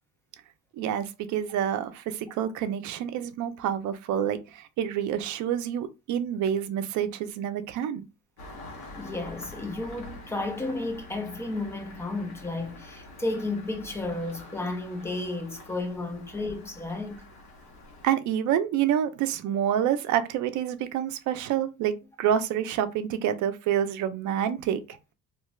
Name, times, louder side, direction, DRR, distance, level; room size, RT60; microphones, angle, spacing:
voice 1, 0.7-8.0 18.0-25.0, right 9 dB, 70° right, 0.5 m, -28 dB
Engine starting, 8.4-18.1, left 2 dB, 70° left, 1.0 m, -46 dB
voice 2, 9.0-17.3, left 2 dB, 10° left, 0.4 m, -33 dB
2.5 x 2.3 x 3.0 m
cardioid pair, 160°, 30 cm